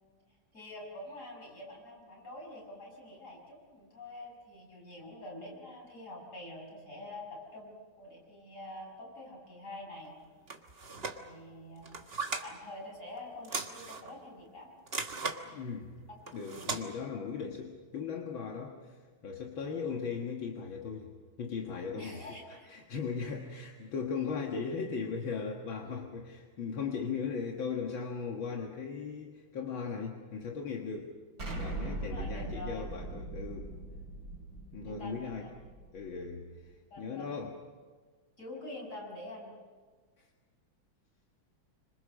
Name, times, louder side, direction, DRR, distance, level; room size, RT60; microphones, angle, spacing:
voice 1, 0.5-10.2 11.2-12.0 12.4-14.7 16.2-16.7 21.9-22.7 32.1-32.8 34.8-35.5 36.9-37.3 38.4-39.6, left 1 dB, 35° left, -1 dB, 6.7 m, -46 dB
sound 1, 10.5-11.2 11.8-12.5 13.4-14.1 14.9-15.4 16.3-16.8, right 4 dB, 30° right, 1.5 m, -37 dB
voice 2, 15.5-15.9 16.3-21.1 21.4-22.2 22.5-31.1 31.5-33.7 34.7-35.5 35.9-37.6 40.2-40.3, left 5 dB, 75° left, 1 dB, 2.3 m, -38 dB
Explosion, 31.4-36.2, right 2 dB, 50° right, 3.9 m, -40 dB
27.0 x 26.0 x 6.4 m, 1.5 s
omnidirectional pair, 2.2 m